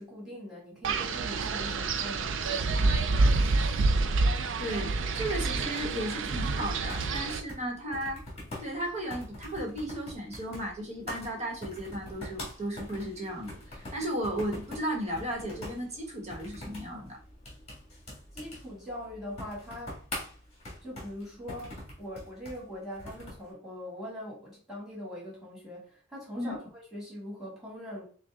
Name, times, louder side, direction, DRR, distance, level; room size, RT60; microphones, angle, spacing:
voice 1, 0.0-3.4 18.3-20.0 20.8-28.0, equal, ahead, -6 dB, 2.1 m, -42 dB
Wind, 0.8-7.4, right 3 dB, 60° right, 0.4 m, -27 dB
voice 2, 4.6-8.2 8.6-17.2 26.4-26.5, equal, 30° right, 1 dB, 1.1 m, -35 dB
sound 1, 5.6-23.5, left 1 dB, 30° left, 2.0 m, -44 dB
5.9 x 2.2 x 3.6 m, 0.43 s
head